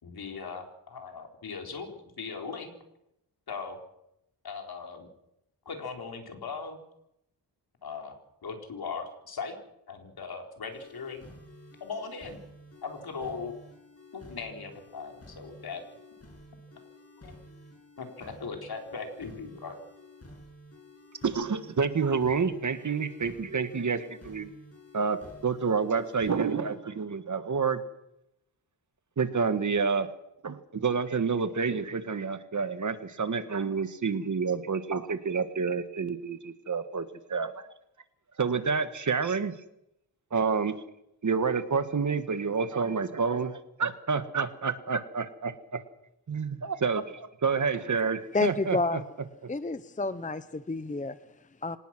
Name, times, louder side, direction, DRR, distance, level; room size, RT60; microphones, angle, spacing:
voice 1, 0.0-2.7 3.5-3.8 4.4-5.1 5.7-6.8 7.8-8.2 8.4-9.6 9.9-11.3 11.8-12.4 12.8-13.5 14.1-15.8 17.2-17.3 18.0-19.8, left 5 dB, 60° left, 4 dB, 4.4 m, -39 dB
sound 1, 10.7-26.7, left 1 dB, 35° left, 8.0 m, -51 dB
voice 2, 21.2-24.5 24.9-25.2 25.4-27.8 29.2-30.1 30.4-37.6 38.4-39.5 40.3-40.7 41.2-45.8 46.3-49.0, right 5 dB, 45° right, 11 dB, 1.7 m, -29 dB
voice 3, 48.3-49.1 49.5-51.8, left 3 dB, 20° left, 13 dB, 0.8 m, -30 dB
25.5 x 19.0 x 6.1 m, 0.82 s
wide cardioid pair, 120°, 42 cm